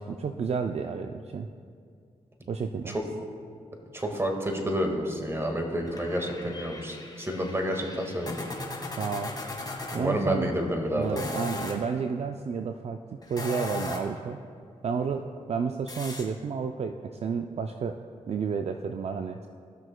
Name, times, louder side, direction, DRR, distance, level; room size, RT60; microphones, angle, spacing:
voice 1, 0.0-1.5 2.5-3.0 9.0-9.3 9.9-10.5 10.9-13.0 13.3-14.4 14.8-18.0 18.2-19.5, right 5 dB, 50° right, 6 dB, 0.4 m, -31 dB
voice 2, 3.9-8.4 9.9-11.2, equal, 20° right, 2 dB, 1.7 m, -29 dB
sound 1, 5.9-10.0 11.0-11.8 13.2-14.2 15.9-16.2, left 2 dB, 30° left, 1.6 m, -37 dB
16.0 x 6.3 x 2.2 m, 2.2 s
supercardioid pair, 45°, 14 cm